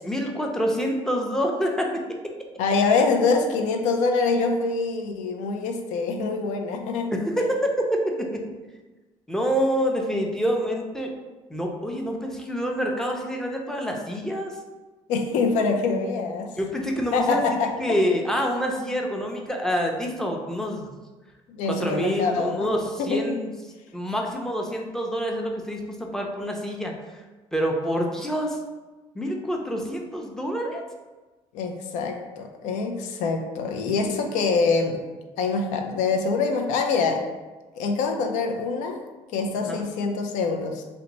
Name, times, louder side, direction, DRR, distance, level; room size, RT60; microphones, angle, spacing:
voice 1, 0.0-2.0 7.1-7.7 8.2-8.4 9.3-11.1 11.5-14.6 16.6-17.4 17.8-21.0 21.7-23.5 23.9-26.9 27.5-28.6 29.1-30.8 39.7-39.8, equal, 5° left, 1 dB, 0.5 m, -27 dB
voice 2, 2.6-7.1 15.1-16.5 17.1-18.0 21.5-22.7 23.0-23.4 31.5-35.0 35.4-37.2 37.8-39.0 39.3-40.8, left 4 dB, 85° left, 4 dB, 0.4 m, -25 dB
2.8 x 2.2 x 3.9 m, 1.2 s
cardioid pair, 100°, 12 cm